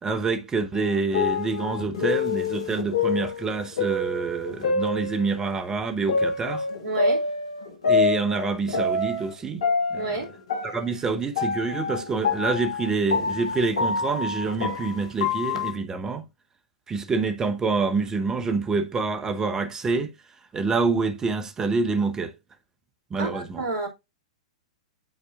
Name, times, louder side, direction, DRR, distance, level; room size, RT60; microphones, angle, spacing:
voice 1, 0.0-6.6 7.9-9.6 9.9-10.2 10.6-16.2 16.9-20.1 20.5-22.3 23.1-23.6, right 4 dB, 15° right, 1.0 m, -27 dB
sound 1, 0.7-5.6 6.1-9.3 9.6-15.7, left 4 dB, 65° left, 1.4 m, -27 dB
voice 2, 6.8-7.2 9.9-10.3 23.2-23.9, right 3 dB, 55° right, 2.5 m, -29 dB
9.6 x 4.2 x 2.4 m
figure-of-eight pair, 105°, 4 cm